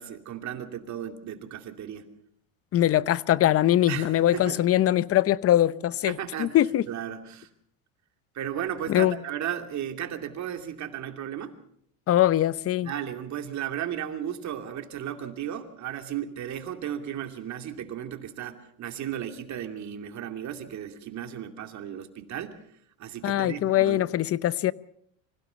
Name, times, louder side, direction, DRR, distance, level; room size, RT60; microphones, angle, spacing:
voice 1, 0.0-2.1 3.9-4.6 6.1-6.6 6.9-7.5 8.3-11.5 12.8-22.6 23.0-24.0, right 10 dB, 40° right, 2.6 m, -35 dB
voice 2, 2.7-6.8 8.9-9.1 12.1-12.9 23.2-24.7, left 13 dB, 35° left, 0.8 m, -22 dB
25.5 x 16.5 x 6.9 m
supercardioid pair, 115°, 42 cm